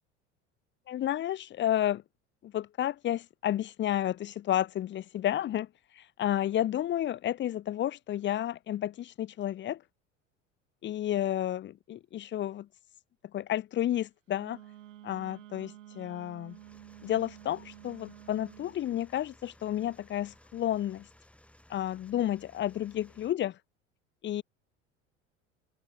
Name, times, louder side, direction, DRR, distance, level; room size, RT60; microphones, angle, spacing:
voice 1, 0.9-2.0 2.4-5.7 5.9-9.8 10.8-12.7 13.3-14.6 15.0-16.6 17.0-21.1 21.7-23.6 24.2-24.4, left 12 dB, 30° left, 0.7 m, -31 dB
Wind instrument woodwind instrument, 14.4-18.8, right 13 dB, 80° right, 0.6 m, -51 dB
sound 1, 16.5-23.3, left 1 dB, 5° left, 7.5 m, -59 dB
figure-of-eight pair, 70°, 37 cm